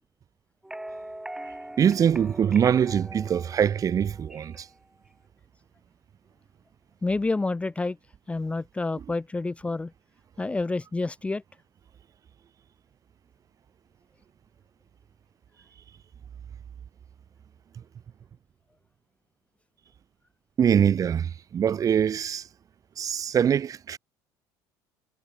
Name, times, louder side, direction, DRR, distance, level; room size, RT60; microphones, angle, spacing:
sound 1, 0.6-4.7, right 1 dB, 5° right, 1.3 m, -41 dB
voice 1, 1.8-4.7 20.6-22.5 23.0-24.0, right 8 dB, 40° right, 1.4 m, -23 dB
voice 2, 7.0-8.0 8.3-9.9 10.4-11.4, left 3 dB, 15° left, 0.7 m, -28 dB
supercardioid pair, 95°, 9 cm